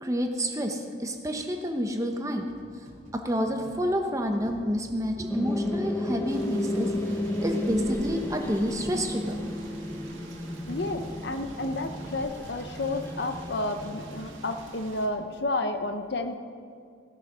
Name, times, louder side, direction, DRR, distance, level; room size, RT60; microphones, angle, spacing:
voice 1, 0.0-2.5 3.1-6.9 7.4-9.4, equal, 15° right, 4 dB, 0.9 m, -29 dB
sound 1, 2.5-13.6, right 1 dB, 40° right, 3.7 m, -51 dB
sound 2, 5.3-14.6, left 1 dB, 10° left, 0.7 m, -33 dB
sound 3, 6.3-15.1, right 2 dB, 75° right, 1.9 m, -47 dB
voice 2, 10.7-16.4, left 2 dB, 55° left, 8 dB, 0.8 m, -31 dB
16.5 x 8.2 x 6.1 m, 2.3 s
head